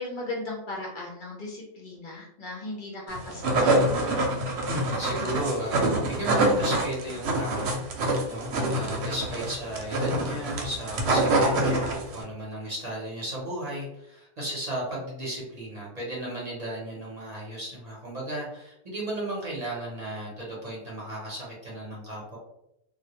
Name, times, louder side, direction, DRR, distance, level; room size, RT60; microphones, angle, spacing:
voice 1, 0.0-3.7, left 2 dB, 55° left, -2 dB, 0.7 m, -37 dB
sound 1, 3.1-12.2, right 2 dB, 90° right, 0.8 m, -25 dB
voice 2, 4.7-7.8 8.3-22.4, right 1 dB, 45° right, -5 dB, 0.8 m, -35 dB
2.1 x 2.1 x 2.8 m, 0.82 s
omnidirectional pair, 1.1 m